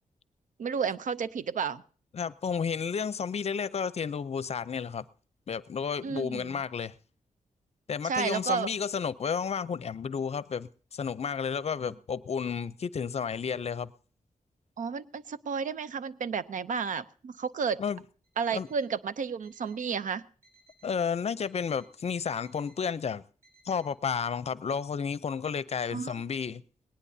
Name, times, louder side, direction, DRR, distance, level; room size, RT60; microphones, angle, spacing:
voice 1, 0.6-1.8 6.0-6.5 8.0-8.7 14.8-17.8 18.4-20.2 25.9-26.2, right 6 dB, 75° right, 0.6 m, -32 dB
voice 2, 2.1-5.0 5.5-6.9 7.9-13.9 17.8-18.0 18.5-18.7 20.8-23.2 23.6-26.6, left 6 dB, 50° left, 0.6 m, -32 dB
Alarm, 18.2-18.9 19.4-20.0 20.4-21.0 21.4-22.0 22.4-22.9 23.4-23.9, right 2 dB, 20° right, 7.1 m, -63 dB
19.5 x 18.5 x 2.7 m
wide cardioid pair, 105°, 13 cm